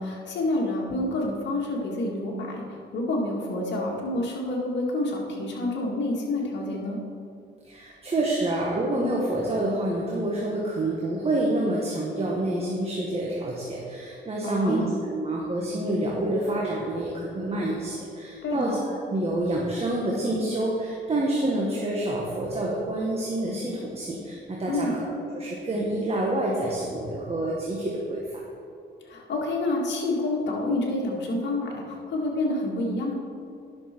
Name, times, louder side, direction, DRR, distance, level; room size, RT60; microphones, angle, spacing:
voice 1, 0.0-7.0 14.4-14.9 18.4-18.8 24.7-24.9 29.1-33.1, left 2 dB, 65° left, -2 dB, 2.1 m, -28 dB
voice 2, 7.6-28.2, right 1 dB, 30° right, -3 dB, 1.5 m, -28 dB
10.5 x 6.4 x 4.5 m, 2.5 s
cardioid pair, 90°, 20 cm